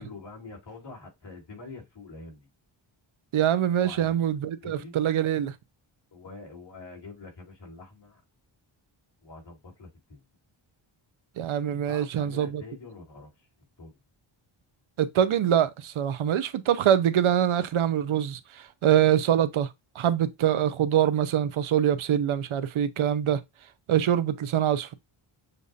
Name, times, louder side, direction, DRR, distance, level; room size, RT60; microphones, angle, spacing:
voice 1, 0.0-2.5 3.8-4.2 4.6-4.9 6.1-8.2 9.2-10.2 11.9-13.5 13.8-14.0, left 3 dB, 60° left, 2.8 m, -45 dB
voice 2, 3.3-5.5 11.4-12.6 15.0-19.7 19.9-23.4 23.9-24.9, right 10 dB, 80° right, 0.7 m, -24 dB
6.7 x 2.5 x 2.7 m
wide cardioid pair, 120°, 49 cm